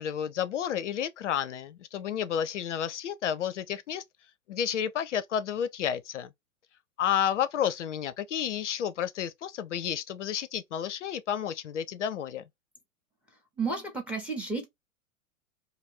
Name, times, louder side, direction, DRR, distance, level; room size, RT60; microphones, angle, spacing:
voice 1, 0.0-4.0 4.5-6.3 7.0-12.4, left 9 dB, 60° left, 0.5 m, -31 dB
voice 2, 13.6-14.7, right 4 dB, 5° right, 0.6 m, -32 dB
2.6 x 2.5 x 3.0 m
figure-of-eight pair, 100°, 42 cm